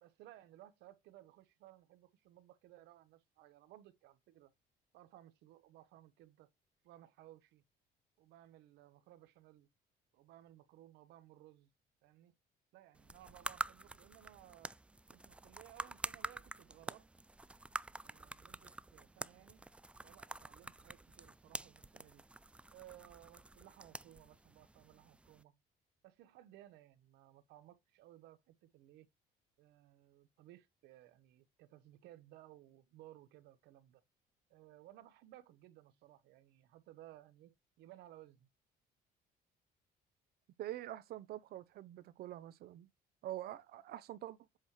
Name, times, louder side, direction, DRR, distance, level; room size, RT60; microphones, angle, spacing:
voice 1, 0.0-4.5 4.9-6.5 6.8-7.6 8.2-9.7 10.1-11.7 12.0-12.3 12.7-14.7 15.1-17.1 18.0-19.6 20.0-22.2 22.7-25.6 26.0-29.1 29.6-34.0 34.5-38.5, right 14 dB, 85° right, 1.0 m, -60 dB
sound 1, 12.9-25.4, right 2 dB, 5° right, 0.3 m, -47 dB
voice 2, 40.6-42.9 43.2-44.4, right 13 dB, 65° right, 0.7 m, -45 dB
7.8 x 3.2 x 4.3 m
cardioid pair, 110°, 17 cm